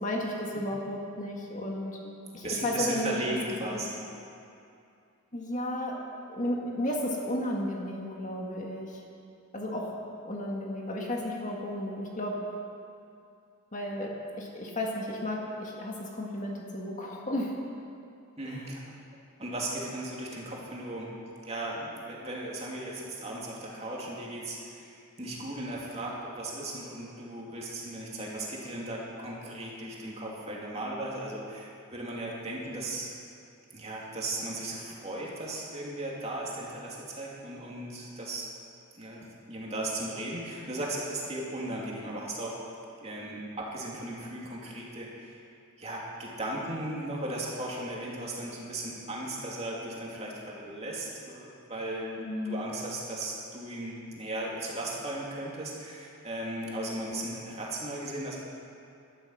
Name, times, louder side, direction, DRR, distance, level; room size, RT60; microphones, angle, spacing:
voice 1, 0.0-3.2 3.7-3.8 5.3-9.0 9.5-10.0 10.2-12.4 13.7-17.5 18.5-18.6 52.2-52.6, left 1 dB, 35° left, -1 dB, 1.9 m, -33 dB
voice 2, 2.4-4.0 18.4-18.8 19.4-21.2 21.4-33.1 33.7-38.5 38.9-42.6 43.0-45.4 45.8-52.1 52.4-58.4, right 1 dB, 30° right, -4 dB, 2.7 m, -36 dB
19.5 x 12.5 x 5.7 m, 2.5 s
head